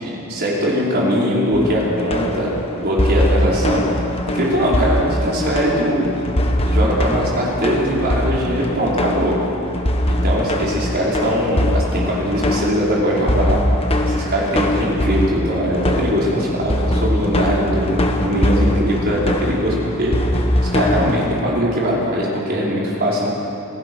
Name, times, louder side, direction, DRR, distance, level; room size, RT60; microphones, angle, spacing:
voice 1, 0.0-4.0 4.3-6.1 6.6-9.4 10.1-13.6 14.1-20.1 20.7-23.3, equal, 45° right, -5 dB, 5.2 m, -20 dB
sound 1, 1.5-21.4, left 1 dB, 25° left, 1.4 m, -21 dB
27.5 x 16.0 x 6.4 m, 2.8 s
head